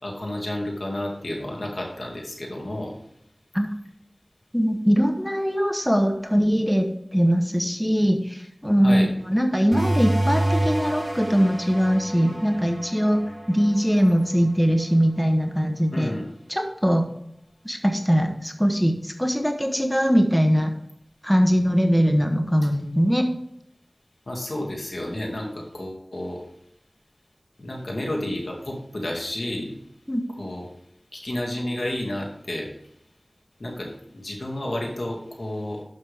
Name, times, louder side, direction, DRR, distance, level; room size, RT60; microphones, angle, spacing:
voice 1, 0.0-3.0 8.8-9.1 15.9-16.3 24.3-26.4 27.6-29.8 30.4-30.7 31.1-32.7 33.6-35.8, left 1 dB, 75° left, -1 dB, 2.3 m, -31 dB
voice 2, 4.5-13.2 13.5-16.1 16.5-17.0 17.6-20.7 21.2-23.3 30.1-30.2, equal, 5° left, 4 dB, 1.0 m, -21 dB
sound 1, 9.7-14.9, right 1 dB, 35° right, 3.5 m, -28 dB
11.5 x 6.2 x 3.5 m, 0.73 s
wide cardioid pair, 55°, 0 cm